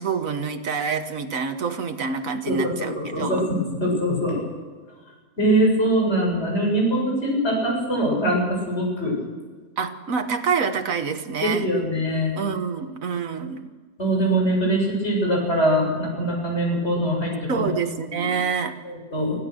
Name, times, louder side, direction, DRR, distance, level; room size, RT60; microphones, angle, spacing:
voice 1, 0.0-3.5 9.8-11.7 12.3-13.7 17.5-18.7, right 6 dB, 60° right, 7 dB, 1.7 m, -27 dB
voice 2, 2.5-4.4 5.4-9.2 11.4-12.3 14.0-17.8 18.1-18.2 18.8-19.3, right 1 dB, 40° left, -1 dB, 7.9 m, -23 dB
25.0 x 16.0 x 6.4 m, 1.4 s
omnidirectional pair, 1.7 m